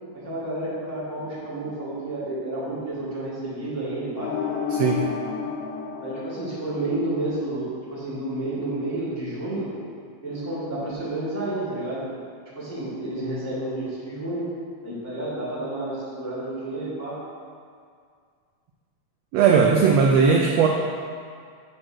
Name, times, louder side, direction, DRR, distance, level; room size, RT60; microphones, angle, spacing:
voice 1, 0.1-4.3 6.0-9.7 10.2-12.1 12.5-14.4 14.8-17.2, right 2 dB, 5° left, -10 dB, 1.4 m, -30 dB
sound 1, 4.2-7.1, left 6 dB, 80° left, 1.5 m, -30 dB
voice 2, 4.7-5.0 19.3-20.7, right 5 dB, 80° right, 0 dB, 1.5 m, -18 dB
7.7 x 4.2 x 6.2 m, 2.1 s
omnidirectional pair, 3.5 m